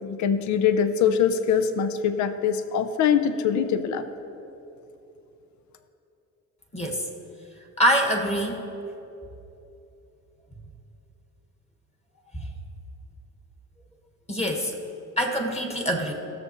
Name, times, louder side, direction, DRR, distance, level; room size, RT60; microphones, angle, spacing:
voice 1, 0.0-4.0, left 7 dB, 70° left, 10 dB, 0.6 m, -23 dB
voice 2, 7.8-8.6 14.3-14.7 15.2-16.1, equal, 20° left, 2 dB, 1.4 m, -24 dB
16.0 x 6.7 x 3.0 m, 2.9 s
cardioid pair, 90°, 30 cm